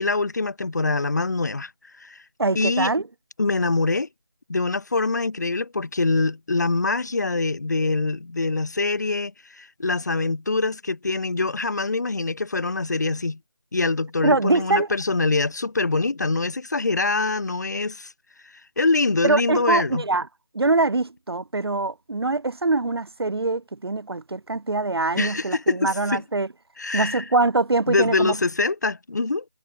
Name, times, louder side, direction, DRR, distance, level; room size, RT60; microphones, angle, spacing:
voice 1, 0.0-1.7 2.0-2.2 2.5-2.9 3.4-4.1 4.5-13.4 13.7-18.1 18.8-20.0 25.2-26.2 26.8-27.2 27.9-29.4, left 3 dB, 40° left, 0.7 m, -24 dB
voice 2, 2.4-3.0 14.2-14.9 19.2-20.3 20.5-26.5 26.9-28.4, right 3 dB, 70° right, 1.0 m, -23 dB
figure-of-eight pair, 175°, 14 cm